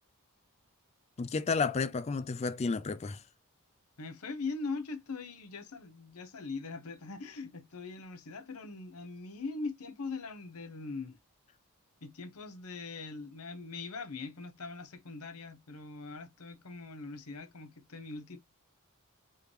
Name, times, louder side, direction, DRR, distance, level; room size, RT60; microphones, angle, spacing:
voice 1, 1.2-3.2, left 4 dB, 30° left, 0.3 m, -31 dB
voice 2, 4.0-11.2 12.0-18.4, left 4 dB, 85° left, 0.9 m, -41 dB
4.8 x 3.0 x 3.2 m
head